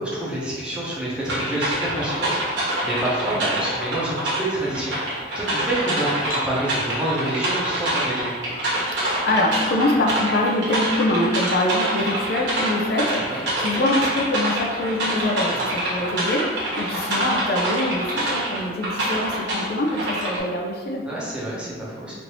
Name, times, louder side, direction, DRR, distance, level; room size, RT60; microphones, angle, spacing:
voice 1, 0.0-8.3 13.3-13.4 21.0-22.2, right 1 dB, 5° right, -7 dB, 0.7 m, -28 dB
sound 1, 1.2-20.4, right 1 dB, 70° right, 1.1 m, -26 dB
sound 2, 6.3-6.6 8.2-8.3 8.9-9.1 11.5-11.7 13.5-13.6 15.6-15.8 17.7-17.9 18.5-18.6 20.2-20.4, right 2 dB, 50° right, 0.7 m, -38 dB
voice 2, 8.9-21.1, left 1 dB, 55° left, 1 dB, 0.4 m, -24 dB
3.1 x 2.6 x 2.9 m, 1.5 s
head